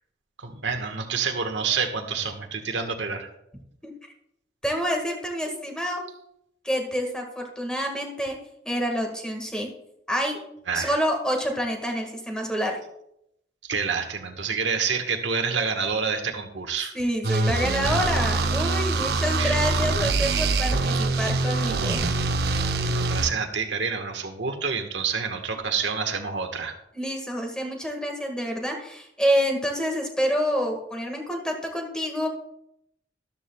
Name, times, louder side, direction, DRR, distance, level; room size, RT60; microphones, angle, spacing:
voice 1, 0.4-3.3 10.7-10.9 13.6-16.9 19.4-19.6 22.8-26.7, right 5 dB, 90° right, 5 dB, 1.3 m, -28 dB
voice 2, 4.6-6.0 6.6-8.4 8.7-9.7 10.1-10.4 10.7-12.8 16.9-22.0 26.9-32.3, equal, 5° left, 2 dB, 1.6 m, -27 dB
sound 1, 17.2-23.3, right 3 dB, 60° right, 0.6 m, -24 dB
13.0 x 12.0 x 2.3 m, 0.78 s
head